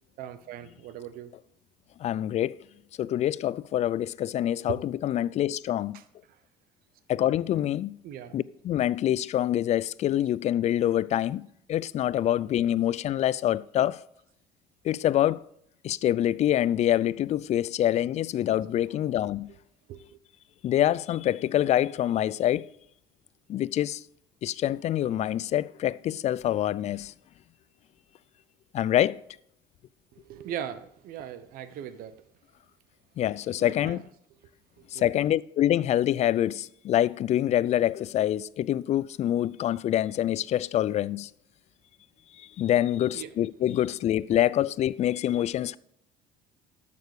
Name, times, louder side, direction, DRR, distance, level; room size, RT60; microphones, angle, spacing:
voice 1, 0.2-1.3 4.7-4.8 5.9-6.0 8.0-8.4 18.9-19.0 19.9-20.2 30.1-32.2 33.6-34.0 34.9-35.0 43.1-43.3, right 10 dB, 70° right, 0.9 m, -39 dB
voice 2, 2.0-2.6 3.0-6.0 7.1-7.9 8.3-11.4 11.7-14.0 14.8-15.4 15.8-19.5 20.6-22.7 23.5-24.0 24.4-27.1 28.7-29.2 33.2-34.0 34.9-41.3 42.6-45.8, left 12 dB, 45° left, 0.4 m, -26 dB
12.0 x 6.7 x 4.8 m
supercardioid pair, 95°, 16 cm